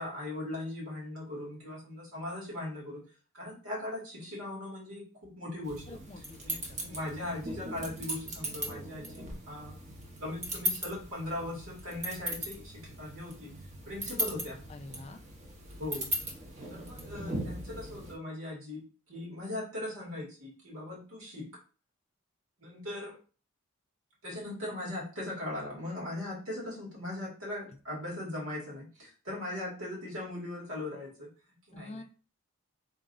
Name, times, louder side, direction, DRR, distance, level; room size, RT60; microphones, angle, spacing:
voice 1, 0.0-3.0 3.3-6.0 6.4-9.7 10.2-13.5 13.9-14.6 15.8-16.1 16.7-21.5 22.6-23.2 24.2-32.0, left 1 dB, 80° right, -4 dB, 2.1 m, -39 dB
sound 1, 5.6-18.1, equal, 30° right, 0.8 m, -38 dB
voice 2, 5.9-7.0 14.7-15.2 31.7-32.0, left 2 dB, 30° left, 7 dB, 0.3 m, -47 dB
3.6 x 2.5 x 4.0 m, 0.36 s
head